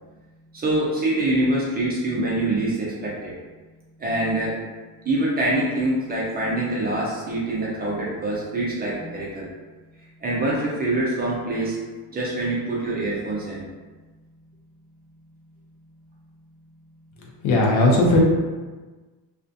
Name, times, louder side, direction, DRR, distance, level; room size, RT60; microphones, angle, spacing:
voice 1, 0.5-3.1 4.0-4.5 5.1-9.5 10.2-11.7 12.1-13.6, right 1 dB, 20° right, -6 dB, 0.4 m, -24 dB
voice 2, 17.4-18.2, left 2 dB, 90° left, -2 dB, 0.8 m, -17 dB
2.4 x 2.2 x 2.5 m, 1.3 s
cardioid pair, 140°, 47 cm